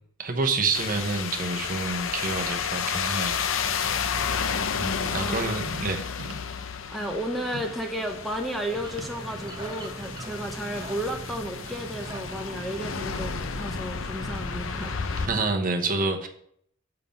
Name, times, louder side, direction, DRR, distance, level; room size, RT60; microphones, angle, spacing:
voice 1, 0.2-3.9 4.7-6.1 15.3-16.3, right 3 dB, 45° right, 4 dB, 0.9 m, -28 dB
sound 1, 0.7-15.3, left 6 dB, 70° left, 0.6 m, -32 dB
sound 2, 5.1-5.4 6.2-6.7 7.5-7.9 9.0-9.2 9.9-10.0, right 3 dB, 90° right, 0.7 m, -41 dB
voice 2, 5.2-5.6 6.9-15.3, right 1 dB, ahead, 3 dB, 0.7 m, -33 dB
sound 3, 8.7-15.5, right 2 dB, 20° right, 1.1 m, -40 dB
7.4 x 5.7 x 5.3 m, 0.67 s
head